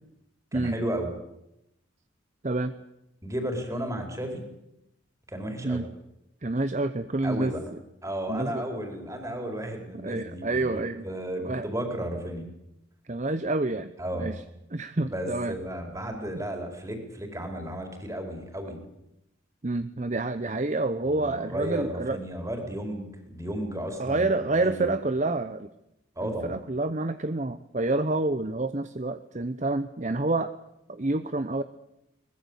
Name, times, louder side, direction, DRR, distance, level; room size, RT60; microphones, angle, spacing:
voice 1, 0.5-1.1 3.2-4.4 5.3-5.8 7.2-7.6 8.0-10.7 11.0-12.5 14.0-14.3 15.0-18.8 21.1-24.3 24.6-24.9 26.2-26.5, right 1 dB, 15° right, 4 dB, 4.5 m, -33 dB
voice 2, 6.4-7.5 8.3-8.6 9.9-11.1 11.4-11.7 13.1-14.4 14.7-15.6 19.6-22.2 24.0-25.7 26.2-30.5 30.9-31.6, right 2 dB, 35° right, 11 dB, 0.8 m, -28 dB
23.0 x 20.5 x 8.2 m, 0.85 s
head